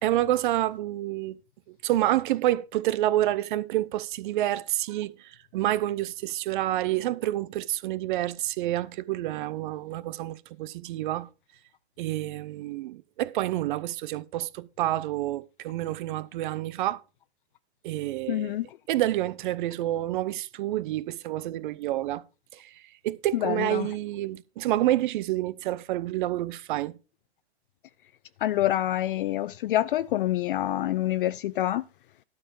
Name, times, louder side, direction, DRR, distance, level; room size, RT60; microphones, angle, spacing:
voice 1, 0.0-1.4 1.7-11.3 12.0-17.0 17.8-18.5 18.9-22.2 22.5-27.0, right 14 dB, 50° right, 0.8 m, -28 dB
voice 2, 18.3-18.8 23.3-23.9 28.4-31.9, left 14 dB, 55° left, 0.4 m, -27 dB
12.0 x 4.3 x 7.0 m
figure-of-eight pair, 105°, 33 cm